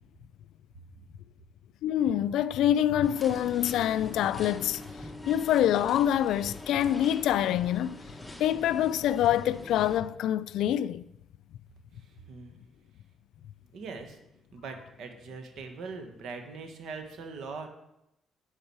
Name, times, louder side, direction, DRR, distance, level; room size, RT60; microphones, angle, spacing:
voice 1, 1.8-4.8 5.3-8.0 8.4-11.0, left 11 dB, 85° left, 0.3 m, -26 dB
sound 1, 3.0-10.0, left 1 dB, 5° left, 1.2 m, -44 dB
voice 2, 11.9-12.5 13.7-14.2 14.5-17.7, right 4 dB, 75° right, 1.6 m, -41 dB
8.6 x 8.1 x 4.7 m
cardioid pair, 90°, 0 cm